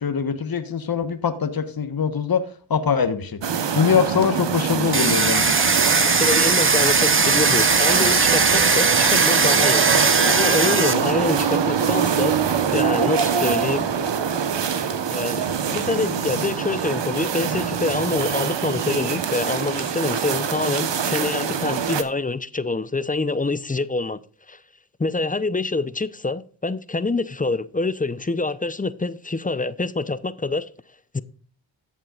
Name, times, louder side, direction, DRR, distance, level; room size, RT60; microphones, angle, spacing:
voice 1, 0.0-3.4 3.7-5.6, left 6 dB, 45° left, 1.3 m, -23 dB
sound 1, 3.4-22.0, right 7 dB, 60° right, 1.2 m, -24 dB
Domestic sounds home sounds, 4.9-10.9, right 4 dB, 25° right, 1.0 m, -19 dB
voice 2, 6.0-12.3 12.7-13.9 15.1-24.2 24.5-24.6 25.0-30.7 31.1-31.2, left 3 dB, 15° left, 0.7 m, -26 dB
14.0 x 7.3 x 2.5 m
supercardioid pair, 45°, 48 cm